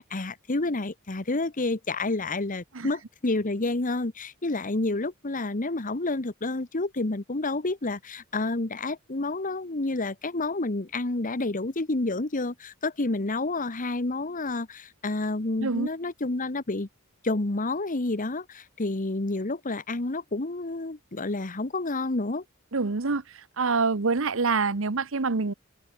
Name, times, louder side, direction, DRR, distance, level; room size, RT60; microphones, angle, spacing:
voice 1, 0.0-16.9 17.2-22.4, left 2 dB, 40° left, 1.3 m, -29 dB
voice 2, 22.7-23.2 23.6-25.5, right 4 dB, 65° right, 1.0 m, -25 dB
head